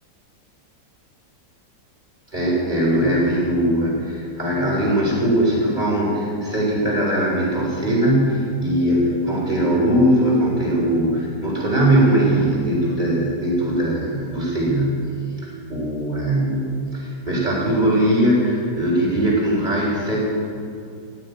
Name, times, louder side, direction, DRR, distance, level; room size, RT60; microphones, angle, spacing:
voice 1, 2.3-14.9 15.4-20.2, right 1 dB, 25° right, -4 dB, 3.9 m, -20 dB
16.5 x 7.1 x 9.6 m, 2.5 s
omnidirectional pair, 2.0 m